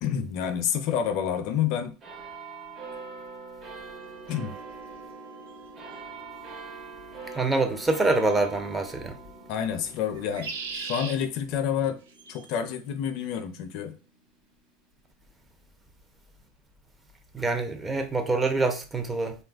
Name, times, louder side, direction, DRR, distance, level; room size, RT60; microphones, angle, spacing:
voice 1, 0.0-1.9 4.3-4.5 9.5-12.0 12.3-14.0, left 8 dB, 60° left, 0.4 m, -28 dB
sound 1, 2.0-14.9 15.5-15.6, right 4 dB, 40° right, 1.1 m, -44 dB
sound 2, 5.5-5.6 8.0-8.4 10.1-11.2 12.1-12.5, right 5 dB, 85° right, 0.5 m, -37 dB
voice 2, 7.3-9.2 17.3-19.4, right 3 dB, 15° right, 0.6 m, -25 dB
3.1 x 2.4 x 2.3 m
hypercardioid pair, 100°, 0 cm